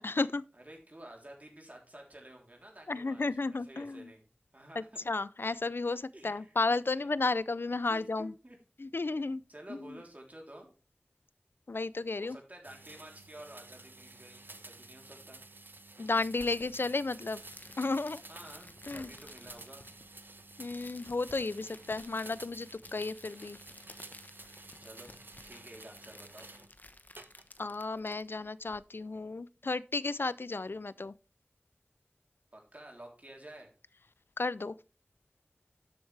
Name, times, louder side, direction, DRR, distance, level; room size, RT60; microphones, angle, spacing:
voice 1, 0.0-0.4 2.9-4.1 4.8-8.3 8.8-9.4 9.7-9.8 11.7-12.4 16.0-17.4 17.8-18.2 18.9-19.1 20.6-23.6 27.6-31.1 34.4-34.7, left 3 dB, 80° left, 0.4 m, -33 dB
voice 2, 0.5-4.3 4.5-4.9 6.1-6.6 7.0-7.1 7.9-8.6 9.5-10.7 12.2-15.4 18.3-19.9 24.8-25.2 25.4-26.5 32.5-33.7, right 1 dB, 45° right, 3.4 m, -51 dB
sound 1, 12.6-26.7 27.2-27.7, right 2 dB, 65° right, 0.9 m, -52 dB
sound 2, 16.2-28.8, left 2 dB, 50° left, 1.0 m, -55 dB
12.0 x 7.8 x 3.3 m
wide cardioid pair, 40°, 4 cm